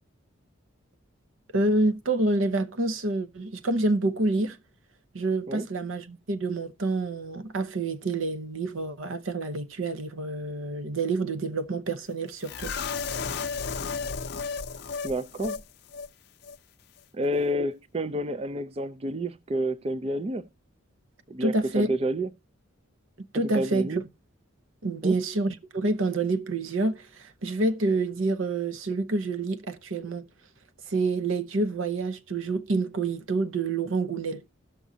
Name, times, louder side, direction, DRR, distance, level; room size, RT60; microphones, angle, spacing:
voice 1, 1.5-4.6 5.1-12.7 21.4-21.9 23.2-23.9 24.8-30.3 30.9-34.4, right 2 dB, 80° right, 0.8 m, -27 dB
sound 1, 12.4-15.6 15.9-16.1 16.4-16.6, left 5 dB, 55° left, 0.6 m, -33 dB
voice 2, 15.0-15.6 17.1-20.5 21.3-22.3 23.3-24.0 25.0-25.2, right 1 dB, 30° right, 0.4 m, -29 dB
16.5 x 6.1 x 2.7 m
head